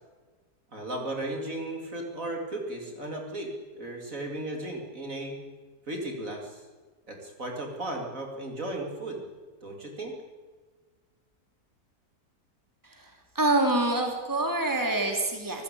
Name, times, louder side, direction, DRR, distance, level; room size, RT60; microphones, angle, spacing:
voice 1, 0.7-5.4 5.9-6.6 7.1-9.2 9.6-10.1, right 1 dB, 55° right, 2 dB, 3.7 m, -35 dB
voice 2, 12.8-15.6, right 2 dB, 10° right, 3 dB, 3.2 m, -26 dB
26.5 x 14.5 x 8.7 m, 1.4 s
omnidirectional pair, 1.7 m